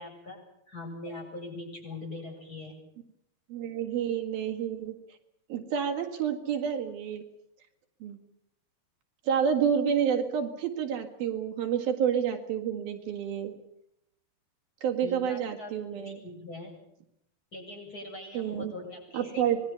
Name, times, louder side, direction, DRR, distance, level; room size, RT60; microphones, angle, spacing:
voice 1, 0.0-2.7 15.0-16.8 17.5-19.5, left 2 dB, 20° left, 0 dB, 8.3 m, -42 dB
voice 2, 3.5-5.0 5.5-7.2 8.0-8.2 9.3-13.6 14.8-16.2 18.3-18.7 19.1-19.6, right 8 dB, 70° right, 3 dB, 3.6 m, -29 dB
25.5 x 21.0 x 7.0 m, 0.76 s
omnidirectional pair, 4.5 m